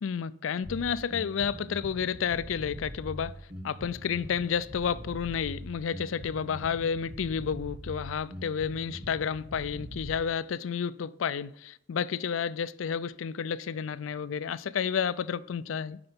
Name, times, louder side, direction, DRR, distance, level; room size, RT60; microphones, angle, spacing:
voice 1, 0.0-3.3 3.6-16.0, left 7 dB, 90° left, 0.4 m, -31 dB
Bass guitar, 0.6-10.2, equal, 75° right, 4.0 m, -42 dB
9.7 x 5.8 x 5.2 m
head